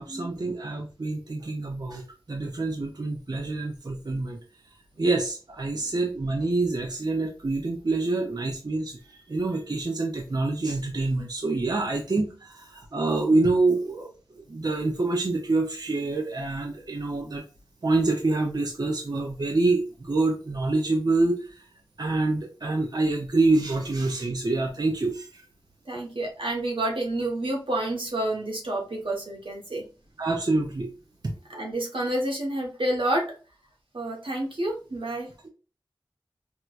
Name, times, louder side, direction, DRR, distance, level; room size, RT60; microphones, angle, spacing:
voice 1, 0.0-4.4 5.0-14.1 14.5-17.4 17.8-21.7 22.0-25.4 30.2-30.9 31.2-31.3, right 2 dB, 50° right, 2 dB, 0.5 m, -26 dB
voice 2, 25.9-29.8 31.5-33.3 33.9-35.3, right 1 dB, 85° right, 0 dB, 1.0 m, -29 dB
4.4 x 2.1 x 2.4 m, 0.35 s
wide cardioid pair, 60°, 9 cm